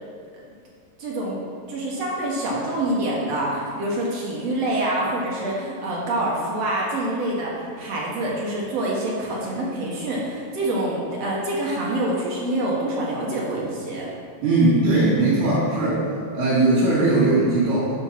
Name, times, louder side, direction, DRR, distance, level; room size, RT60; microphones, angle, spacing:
voice 1, 1.0-1.4 1.7-14.1, right 1 dB, 65° right, -4 dB, 2.1 m, -26 dB
voice 2, 14.4-16.0 16.3-17.9, right 2 dB, 90° right, -10 dB, 3.8 m, -19 dB
9.1 x 4.3 x 5.8 m, 2.4 s
omnidirectional pair, 3.5 m